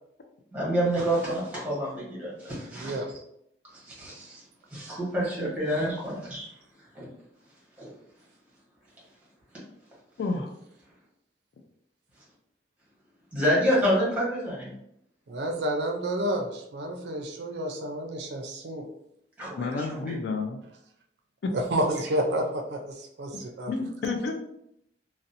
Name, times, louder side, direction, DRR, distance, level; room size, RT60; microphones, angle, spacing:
voice 1, 0.5-3.0 3.8-4.4 4.7-6.5 6.9-7.1 7.8-7.9 13.3-14.7 19.4-19.8, equal, 10° right, -7 dB, 1.0 m, -28 dB
voice 2, 2.7-3.1 15.3-18.9 21.5-23.7, right 1 dB, 65° right, 3 dB, 0.4 m, -30 dB
voice 3, 10.2-10.5 19.6-20.6 21.4-21.5 23.7-24.3, left 3 dB, 65° left, 4 dB, 0.3 m, -30 dB
2.5 x 2.0 x 2.6 m, 0.76 s
head